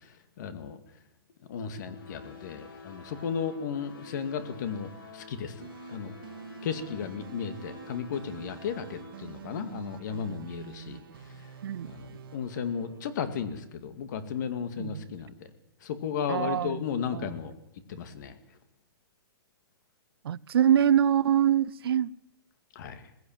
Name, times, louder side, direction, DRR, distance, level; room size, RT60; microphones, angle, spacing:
voice 1, 0.4-0.8 1.5-6.1 6.6-11.0 11.9-15.5 15.8-17.5 17.9-18.3 22.8-23.0, left 7 dB, 50° left, 2.3 m, -34 dB
sound 1, 1.8-9.2, left 4 dB, 65° left, 6.9 m, -49 dB
sound 2, 5.6-13.8, right 8 dB, 65° right, 2.6 m, -47 dB
voice 2, 11.6-11.9 14.8-15.1 16.3-16.8 17.1-17.3 20.2-22.1, right 10 dB, 80° right, 0.7 m, -24 dB
19.5 x 16.0 x 9.1 m
hypercardioid pair, 165°, 13 cm